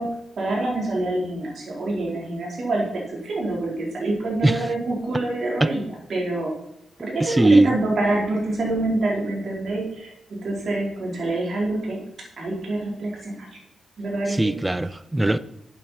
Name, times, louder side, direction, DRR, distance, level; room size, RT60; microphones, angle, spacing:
voice 1, 0.0-6.5 7.0-12.0 12.4-13.5 14.0-14.6 15.3-15.4, right 2 dB, 60° right, 4.5 m, -26 dB
voice 2, 7.2-7.7 14.3-15.4, right 2 dB, 15° right, 0.5 m, -19 dB
8.1 x 8.0 x 5.8 m
cardioid pair, 60°, 0 cm